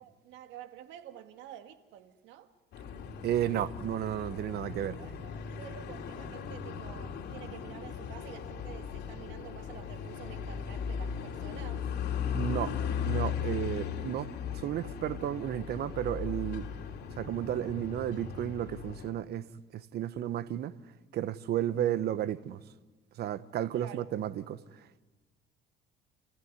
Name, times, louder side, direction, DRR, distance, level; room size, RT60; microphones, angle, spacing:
voice 1, 0.0-2.5 5.0-11.9 23.7-24.0, right 11 dB, 75° right, 2.0 m, -49 dB
sound 1, 2.7-19.1, left 7 dB, 60° left, 3.3 m, -37 dB
voice 2, 3.2-5.0 12.3-12.7 13.0-14.3 14.6-16.7 17.2-19.4 19.7-20.7 21.1-22.6 23.2-24.6, right 11 dB, 60° right, 1.1 m, -32 dB
29.0 x 15.5 x 9.7 m
supercardioid pair, 95°, 19 cm